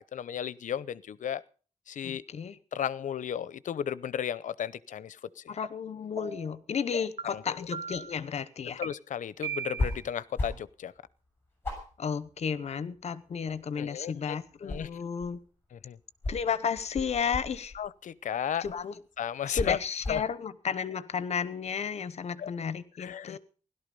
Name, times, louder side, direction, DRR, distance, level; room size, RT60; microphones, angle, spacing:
voice 1, 0.0-1.4 1.9-2.2 2.7-5.4 6.9-7.4 8.8-10.9 13.8-14.4 14.6-14.9 15.7-16.0 17.7-18.6 19.2-19.8 20.1-20.2 22.4-22.5 23.0-23.4, left 9 dB, 75° left, 19 dB, 0.7 m, -34 dB
voice 2, 2.0-2.6 5.5-8.8 12.0-15.4 16.3-17.7 18.6-18.9 19.5-23.4, left 6 dB, 55° left, 16 dB, 0.9 m, -33 dB
sound 1, 5.6-5.7 6.2-6.6 7.2-7.3 7.7-8.2 8.8-8.9 9.4-10.0, right 6 dB, 50° right, 1.8 m, -37 dB
sound 2, 9.8-10.0 10.3-10.7 11.1-11.2 11.6-13.0 13.3-14.1 14.5-15.4 16.2-17.8 18.6-18.8 19.5-20.3, left 2 dB, 15° left, 6.7 m, -34 dB
17.0 x 12.0 x 5.4 m, 0.39 s
wide cardioid pair, 165°, 13 cm